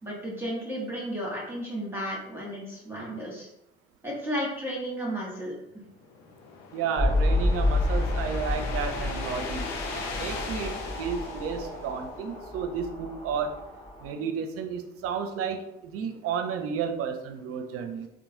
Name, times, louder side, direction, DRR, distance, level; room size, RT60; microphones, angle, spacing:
voice 1, 0.0-3.5 4.0-5.5, equal, 10° right, -5 dB, 1.2 m, -33 dB
sound 1, 5.8-12.4, left 4 dB, 65° left, 0.5 m, -40 dB
voice 2, 6.7-9.7 10.1-13.6 14.0-18.1, right 6 dB, 55° right, 6 dB, 0.5 m, -32 dB
sound 2, 7.0-14.1, left 2 dB, 35° left, 1.4 m, -29 dB
2.9 x 2.1 x 2.7 m, 0.85 s
hypercardioid pair, 50°, 29 cm